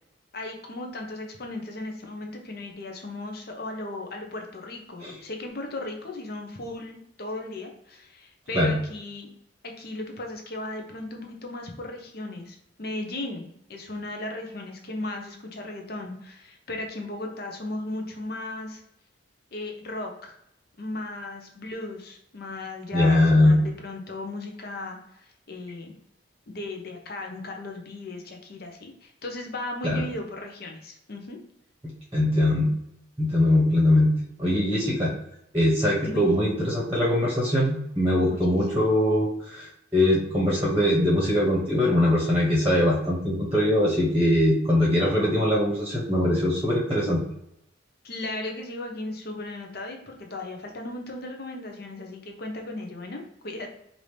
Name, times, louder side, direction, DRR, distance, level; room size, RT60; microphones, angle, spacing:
voice 1, 0.3-9.3 9.6-18.8 19.5-20.3 20.8-25.9 26.5-31.4 36.0-36.3 38.3-38.9 48.0-53.7, left 2 dB, 50° left, 3 dB, 0.8 m, -36 dB
voice 2, 22.9-23.6 29.8-30.0 32.1-32.7 33.2-34.1 34.4-35.1 35.5-47.2, left 1 dB, 15° right, -4 dB, 1.0 m, -22 dB
4.8 x 2.7 x 3.2 m, 0.76 s
head